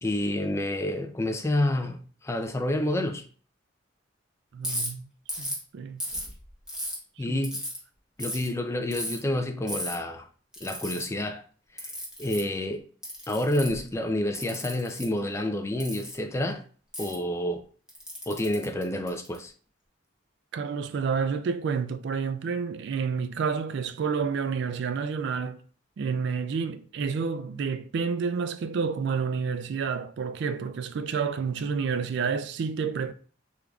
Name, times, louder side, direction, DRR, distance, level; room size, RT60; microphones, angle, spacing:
voice 1, 0.0-3.2 7.2-7.6 8.2-10.3 10.6-11.4 11.7-11.9 12.2-12.8 13.3-16.6 17.0-17.6 18.3-19.5, left 1 dB, 15° left, 0.4 m, -29 dB
voice 2, 4.5-5.1 5.4-6.0 7.3-7.4 20.5-25.6 26.0-33.1, right 5 dB, 65° right, 0.3 m, -29 dB
Ratchet pawl, 4.6-4.9 5.3-5.6 6.0-7.0 7.4-7.8 8.2-8.5 8.9-9.2 9.7-9.9 10.5-11.0 11.8-12.4 13.0-13.8 14.3-15.0 15.8-16.1 16.9-17.1 17.9-19.4, equal, 5° right, 1.1 m, -34 dB
3.7 x 3.2 x 2.3 m
head